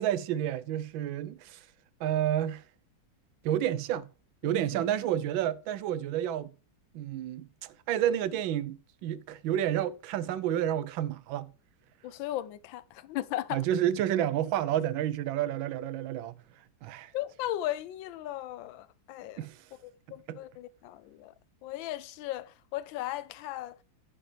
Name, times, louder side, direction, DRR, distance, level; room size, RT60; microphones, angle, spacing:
voice 1, 0.0-1.6 2.0-2.6 3.4-4.1 4.4-6.5 6.9-11.5 13.5-16.3 16.8-17.1 19.4-19.6 20.3-20.4, right 11 dB, 85° right, 1.4 m, -30 dB
voice 2, 4.4-4.8 12.0-13.6 17.1-19.5 19.8-21.3 21.6-23.8, left 14 dB, 80° left, 1.3 m, -37 dB
10.0 x 7.7 x 3.3 m
omnidirectional pair, 2.1 m